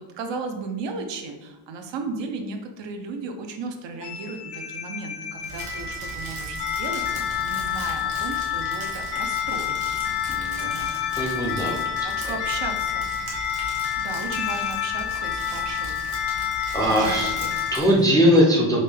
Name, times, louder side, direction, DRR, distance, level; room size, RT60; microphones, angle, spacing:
voice 1, 0.0-7.2 7.4-9.8 10.6-11.0 12.0-13.2 14.0-16.1 16.8-17.5 18.1-18.4, right 4 dB, 65° right, 4 dB, 0.6 m, -35 dB
sound 1, 4.0-17.8, left 9 dB, 60° left, 0.7 m, -29 dB
Crumpling crinkling, 5.4-18.0, right 2 dB, 50° right, 1.1 m, -39 dB
voice 2, 10.3-10.7 11.2-11.8 16.7-17.3 17.7-18.8, equal, 10° left, -4 dB, 0.4 m, -20 dB
5.1 x 2.2 x 3.3 m, 1.1 s
cardioid pair, 155°, 48 cm